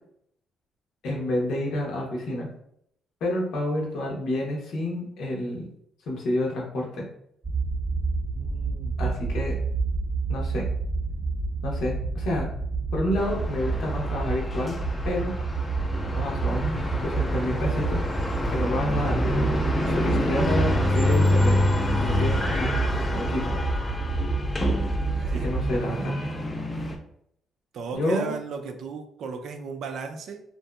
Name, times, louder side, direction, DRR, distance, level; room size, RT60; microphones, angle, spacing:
voice 1, 1.0-2.5 3.2-5.7 6.1-7.1 9.0-9.6 10.3-10.7 11.6-12.5 12.9-14.8 15.0-15.3 16.1-18.0 18.5-19.4 19.9-21.6 22.0-22.7 23.1-23.6 25.3-26.2 27.9-28.4, left 1 dB, 75° left, -2 dB, 0.9 m, -29 dB
sound 1, 7.4-25.8, right 4 dB, 25° right, 0.8 m, -29 dB
voice 2, 8.3-9.1 19.8-20.5 25.1-25.5 27.7-30.4, right 5 dB, 70° right, 5 dB, 0.4 m, -36 dB
sound 2, 13.2-27.0, left 1 dB, 25° left, 0.5 m, -27 dB
2.8 x 2.5 x 2.2 m, 0.72 s
cardioid pair, 90°, 0 cm